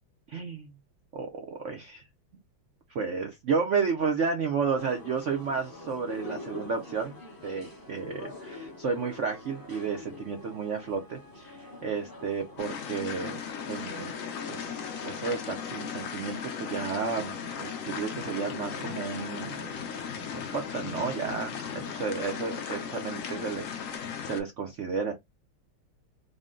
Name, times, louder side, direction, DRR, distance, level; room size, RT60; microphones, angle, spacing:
voice 1, 0.3-0.7 1.1-2.0 2.9-7.1 7.4-13.4 13.7-14.1 14.5-17.3 17.6-19.6 20.3-25.1, right 5 dB, 85° right, 0.6 m, -32 dB
sound 1, 4.8-24.0, left 2 dB, 20° left, 0.6 m, -46 dB
sound 2, 12.6-24.4, left 7 dB, 70° left, 0.7 m, -37 dB
3.8 x 2.1 x 3.6 m
omnidirectional pair, 2.2 m